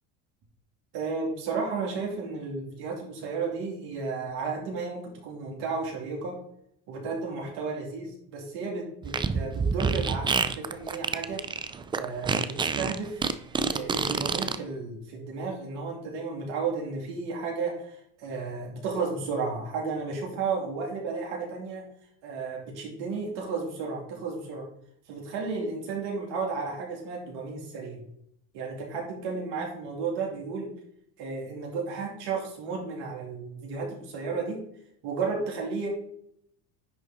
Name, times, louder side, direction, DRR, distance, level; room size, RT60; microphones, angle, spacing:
voice 1, 0.9-6.4 6.9-11.4 11.9-13.2 13.7-21.8 22.2-24.7 25.1-28.0 28.5-30.7 31.2-34.6 35.0-35.9, right 4 dB, 65° right, -1 dB, 2.8 m, -33 dB
Fart, 9.0-14.6, right 5 dB, 15° right, 0.3 m, -27 dB
10.5 x 3.9 x 4.0 m, 0.69 s
supercardioid pair, 100°, 43 cm